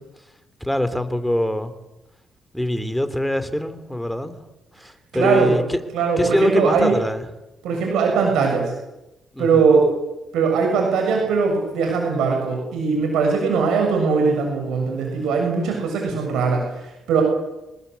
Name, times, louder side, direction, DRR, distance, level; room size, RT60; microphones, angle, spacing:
voice 1, 0.6-1.7 2.5-4.4 4.8-5.8 6.2-7.3 9.3-9.6 16.1-16.2, equal, 5° left, 10 dB, 3.1 m, -23 dB
voice 2, 5.1-5.5 5.9-6.9 7.6-8.7 9.4-9.9 10.3-17.2, right 5 dB, 85° right, 1 dB, 7.2 m, -20 dB
26.5 x 19.0 x 8.3 m, 0.97 s
cardioid pair, 90°, 0 cm